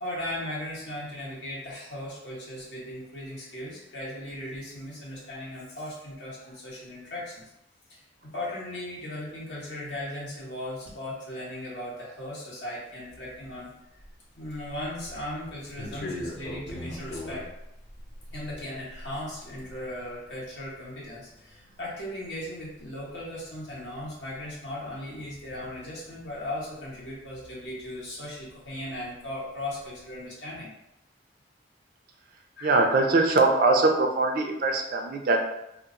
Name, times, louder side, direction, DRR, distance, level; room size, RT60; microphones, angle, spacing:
voice 1, 0.0-7.4 7.9-8.0 8.3-13.7 14.4-17.4 18.3-30.7 32.6-32.8, left 1 dB, 85° left, -6 dB, 1.3 m, -37 dB
sound 1, 13.1-28.6 28.9-30.1, left 1 dB, 60° left, 0.6 m, -44 dB
voice 2, 32.6-35.4, right 3 dB, 55° right, 2 dB, 0.4 m, -22 dB
2.8 x 2.3 x 3.7 m, 0.85 s
head